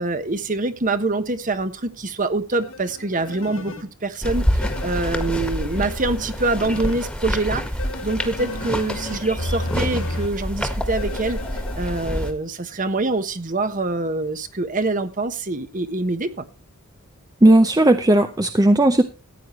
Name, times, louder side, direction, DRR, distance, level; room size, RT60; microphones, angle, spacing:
voice 1, 0.0-3.7 4.0-7.6 8.0-16.4, right 2 dB, 35° right, 10 dB, 1.2 m, -25 dB
sound 1, 2.6-3.8 4.6-7.0 7.8-10.3 11.0-12.3, left 2 dB, 75° left, 2.4 m, -33 dB
sound 2, 4.2-12.3, equal, 5° left, 1.6 m, -27 dB
voice 2, 17.4-19.0, right 1 dB, 15° right, 8 dB, 0.6 m, -15 dB
15.0 x 9.2 x 3.1 m, 0.31 s
head